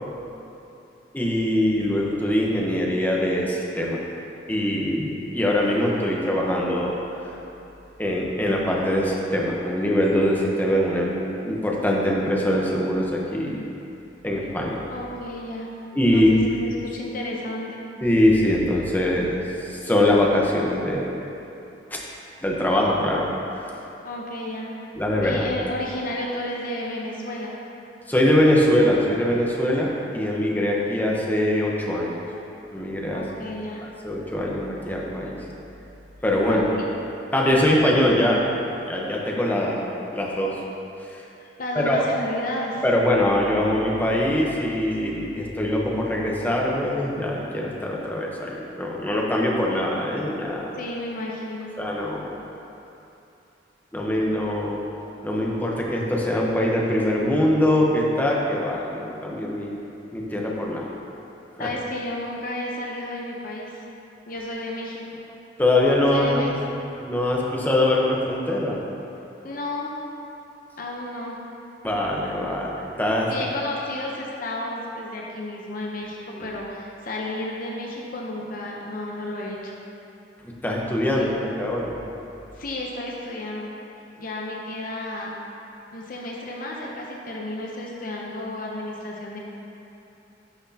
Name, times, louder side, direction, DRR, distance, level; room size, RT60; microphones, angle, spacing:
voice 1, 1.1-4.0 4.5-6.9 8.0-13.6 14.2-14.8 15.9-16.4 18.0-21.2 21.9-22.0 22.4-23.3 25.0-25.5 28.1-32.2 32.7-33.2 33.8-35.3 36.2-36.7 37.3-38.4 38.9-39.8 40.1-40.6 41.1-41.2 41.7-42.0 42.8-50.7 51.8-52.4 53.9-54.8 55.2-59.8 60.1-61.0 61.6-61.7 65.6-66.6 67.0-68.8 71.8-73.3 76.3-76.5 80.4-82.0, left 1 dB, 10° left, -3 dB, 0.9 m, -23 dB
voice 2, 14.9-15.7 16.1-16.3 16.5-17.8 24.0-24.7 25.2-27.5 33.1-33.8 36.4-36.8 41.4-42.8 50.7-51.8 61.6-63.8 64.3-65.2 66.1-66.5 69.4-69.9 70.8-71.4 73.3-79.7 81.1-81.5 82.6-83.7 84.2-85.4 85.9-89.4, left 1 dB, 50° left, -2 dB, 0.8 m, -32 dB
11.5 x 6.1 x 2.8 m, 2.9 s
head